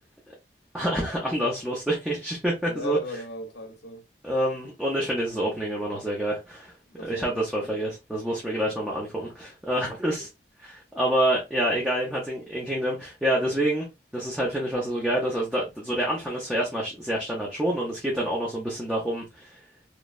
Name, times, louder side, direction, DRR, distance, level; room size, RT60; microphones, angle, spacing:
voice 1, 0.7-3.0 4.2-6.7 7.0-10.3 10.6-13.9 14.1-19.5, right 1 dB, 5° right, 0.6 m, -27 dB
voice 2, 2.6-4.0 6.9-7.5 10.1-10.3, left 1 dB, 70° left, 0.7 m, -36 dB
3.0 x 2.2 x 2.2 m
head